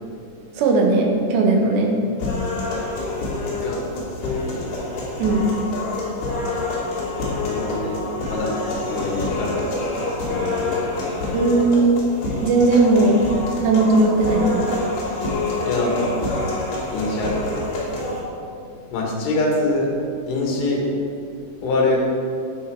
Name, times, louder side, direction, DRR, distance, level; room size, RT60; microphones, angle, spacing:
voice 1, 0.6-2.0 5.2-5.5 11.3-11.8 12.4-13.2 13.6-14.8, right 2 dB, 70° right, 0 dB, 3.4 m, -17 dB
sound 1, 2.2-18.2, left 2 dB, 60° left, 4.5 m, -27 dB
voice 2, 3.5-5.0 7.4-8.0 8.3-11.0 15.6-16.2 16.9-17.7 18.9-19.9 20.3-20.9 21.6-22.0, left 2 dB, 80° left, -1 dB, 4.5 m, -25 dB
12.5 x 11.0 x 4.9 m, 2.5 s
omnidirectional pair, 5.6 m